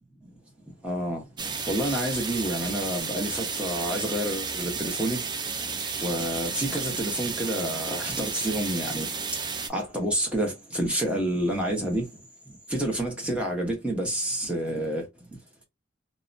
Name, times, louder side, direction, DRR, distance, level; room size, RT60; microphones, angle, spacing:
voice 1, 0.8-1.2 1.7-5.2 6.0-9.1 9.7-12.1 12.7-15.0, right 1 dB, 5° right, 0.9 m, -28 dB
sound 1, 1.4-9.7, right 5 dB, 20° right, 0.4 m, -32 dB
2.7 x 2.1 x 2.5 m
head